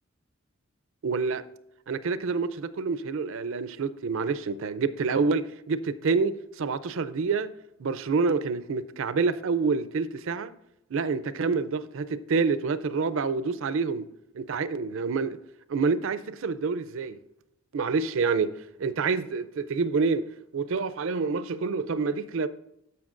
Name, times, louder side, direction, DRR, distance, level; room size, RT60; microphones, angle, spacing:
voice 1, 1.0-1.4 1.9-7.5 7.8-10.5 10.9-14.1 14.3-15.4 15.7-17.2 17.7-18.5 18.8-20.3 20.5-22.5, right 4 dB, 65° right, 0.5 m, -27 dB
13.5 x 5.7 x 2.5 m
head